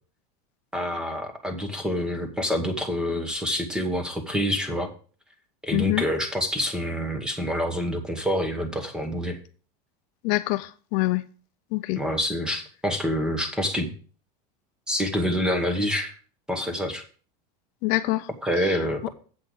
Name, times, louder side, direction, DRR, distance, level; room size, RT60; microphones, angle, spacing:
voice 1, 0.7-4.9 5.6-9.4 12.0-13.9 14.9-16.1 16.5-17.0 18.4-19.1, equal, 5° right, 1.1 m, -27 dB
voice 2, 5.7-6.0 10.2-11.2 11.7-12.0 17.8-18.3 19.0-19.1, left 20 dB, 45° left, 0.4 m, -25 dB
7.9 x 5.5 x 6.3 m
supercardioid pair, 160°, 20 cm